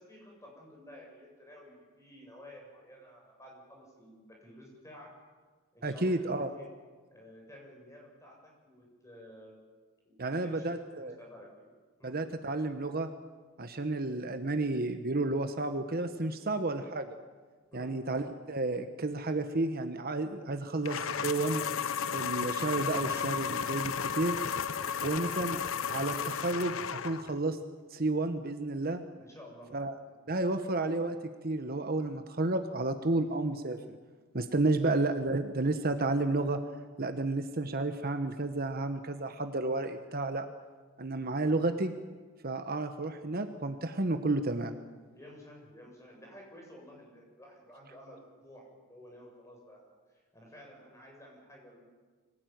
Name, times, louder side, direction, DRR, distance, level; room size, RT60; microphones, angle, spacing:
voice 1, 0.0-5.1 5.7-6.7 7.1-9.6 10.0-10.7 11.0-11.6 12.0-12.2 17.7-17.9 24.7-25.1 29.2-29.7 34.8-35.0 45.1-50.0 50.3-51.9, equal, 15° left, -1 dB, 7.6 m, -52 dB
voice 2, 5.8-6.5 10.2-11.2 12.0-13.1 13.6-17.2 17.7-21.6 22.1-24.4 25.0-25.6 25.9-27.6 27.9-29.1 29.7-30.0 30.3-31.2 31.4-34.0 34.3-36.6 37.0-40.5 41.0-41.9 42.4-44.8, right 2 dB, 45° right, 8 dB, 1.2 m, -31 dB
sound 1, 20.8-27.4, left 7 dB, 70° left, 0.8 m, -34 dB
24.5 x 17.5 x 9.4 m, 1.4 s
head